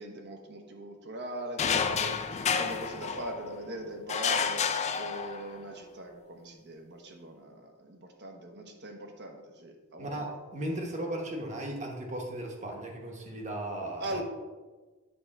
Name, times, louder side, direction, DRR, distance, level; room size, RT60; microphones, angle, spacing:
voice 1, 0.0-2.2 2.6-4.6 4.9-10.3 14.0-14.2, right 1 dB, 55° right, 3 dB, 0.9 m, -40 dB
sound 1, 1.6-3.6 4.1-5.7, left 6 dB, 30° left, 0.4 m, -30 dB
voice 2, 10.0-14.2, right 1 dB, 35° right, 1 dB, 1.2 m, -36 dB
8.2 x 3.3 x 5.9 m, 1.3 s
head